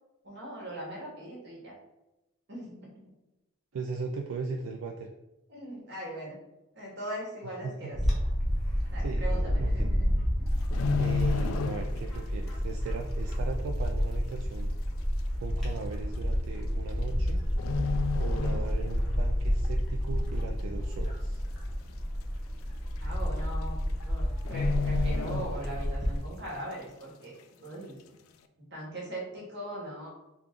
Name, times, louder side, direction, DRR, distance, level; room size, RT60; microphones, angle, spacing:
voice 1, 0.2-1.7 2.5-3.1 5.5-6.4 6.7-8.0 8.9-10.6 18.1-18.2 23.0-23.8 24.1-27.3 27.6-27.9 28.7-30.1, right 1 dB, 55° right, -4 dB, 1.3 m, -40 dB
voice 2, 3.7-5.1 7.6-8.0 9.0-9.9 11.0-14.7 15.4-17.4 18.2-21.4, right 4 dB, 85° right, 3 dB, 0.3 m, -38 dB
Bird / Wind, 7.9-26.2, equal, ahead, 0.9 m, -30 dB
sound 1, 10.5-12.2 12.5-12.8 13.3-13.4 14.3-14.4 14.6-14.7 15.6-15.8 16.9-17.3 17.6-19.1 19.5-19.7 20.2-20.7 21.1-21.2 21.4-21.5 21.9-22.0 23.0-23.1 23.3-23.6 23.9-24.0 24.4-26.1 26.4-26.5, left 5 dB, 85° left, 0.3 m, -32 dB
3.5 x 2.3 x 3.6 m, 0.95 s
head